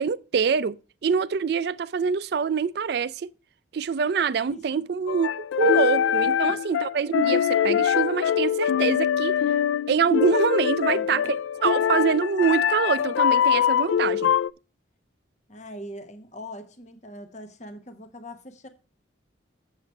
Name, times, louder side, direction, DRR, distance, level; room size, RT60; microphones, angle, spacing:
voice 1, 0.0-3.3 3.7-9.4 9.9-11.2 11.6-14.3, right 6 dB, 55° right, 0.3 m, -25 dB
voice 2, 4.5-4.8 6.2-6.6 10.9-11.4 15.5-18.7, left 1 dB, 35° left, 1.0 m, -42 dB
sound 1, 5.1-14.5, left 9 dB, 80° left, 0.3 m, -23 dB
7.5 x 7.4 x 4.4 m
head